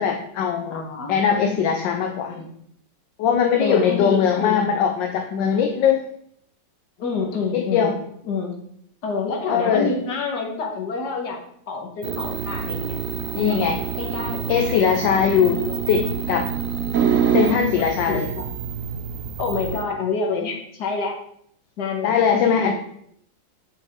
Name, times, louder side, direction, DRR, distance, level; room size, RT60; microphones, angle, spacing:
voice 1, 0.0-0.8 1.1-2.4 3.2-6.0 7.5-8.0 9.5-9.9 13.4-13.8 14.5-16.5 17.3-18.3 22.0-22.7, left 7 dB, 80° left, 4 dB, 1.4 m, -20 dB
voice 2, 0.7-1.2 2.3-2.5 3.6-4.7 7.0-7.9 8.3-8.5 9.0-13.0 13.3-13.6 14.0-14.5 15.6-15.8 17.8-18.5 19.4-21.2 21.8-22.2 22.6-22.7, left 4 dB, 60° left, 2 dB, 1.9 m, -28 dB
sound 1, 12.0-19.8, right 7 dB, 80° right, 0.7 m, -26 dB
8.0 x 6.1 x 3.6 m, 0.69 s
omnidirectional pair, 2.0 m